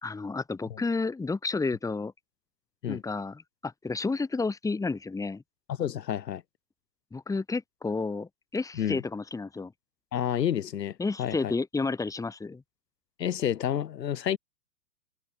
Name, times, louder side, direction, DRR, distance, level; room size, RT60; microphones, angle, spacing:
voice 1, 0.0-2.1 2.9-5.4 7.1-9.7 11.0-12.6, left 3 dB, 5° left, 2.1 m, -31 dB
voice 2, 5.8-6.4 8.7-9.0 10.1-11.5 13.2-14.4, left 9 dB, 80° left, 2.3 m, -30 dB
hypercardioid pair, 125°, 49 cm